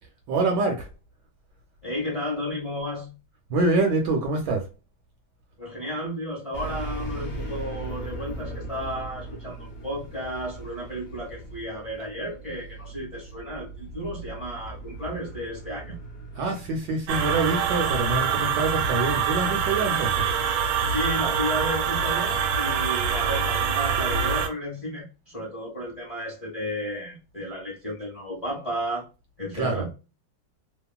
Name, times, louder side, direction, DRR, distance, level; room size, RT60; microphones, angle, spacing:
voice 1, 0.3-0.9 3.5-4.7 16.3-20.3 29.5-29.8, right 3 dB, 75° right, 1.1 m, -25 dB
voice 2, 1.8-3.1 5.6-16.0 20.9-29.1 29.4-29.9, equal, 25° left, 0.8 m, -33 dB
sound 1, 6.5-16.9, right 1 dB, 65° left, 0.5 m, -38 dB
sound 2, 17.1-24.5, right 7 dB, 90° right, 1.4 m, -25 dB
3.0 x 2.4 x 2.3 m
omnidirectional pair, 2.2 m